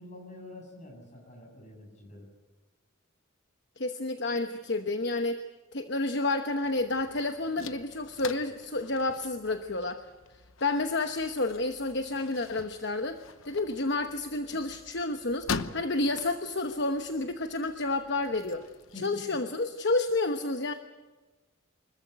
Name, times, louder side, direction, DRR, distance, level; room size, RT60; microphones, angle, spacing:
voice 1, 0.0-2.3 18.9-19.4, left 1 dB, 35° left, 2 dB, 7.3 m, -46 dB
voice 2, 3.8-5.4 5.7-10.0 10.6-13.2 13.4-18.6 19.0-20.7, left 2 dB, 55° left, 7 dB, 1.0 m, -30 dB
sound 1, 6.6-19.0, left 5 dB, 75° left, 0.9 m, -43 dB
25.0 x 14.5 x 9.2 m, 1.2 s
head